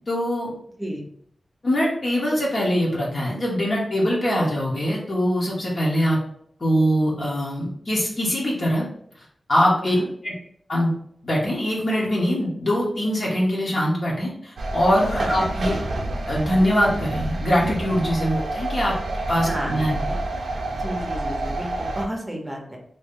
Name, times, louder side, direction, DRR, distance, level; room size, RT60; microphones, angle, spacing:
voice 1, 0.1-0.5 1.6-6.2 6.6-8.8 9.5-10.0 10.2-10.3 10.7-10.9 11.2-15.7 16.3-18.9 19.3-20.0, equal, 50° left, -5 dB, 0.9 m, -22 dB
sound 1, 14.6-22.1, right 2 dB, 80° right, 0.5 m, -28 dB
voice 2, 19.4-20.2 20.8-22.8, equal, 10° right, 1 dB, 0.8 m, -32 dB
3.0 x 2.7 x 3.6 m, 0.66 s
wide cardioid pair, 130°, 0 cm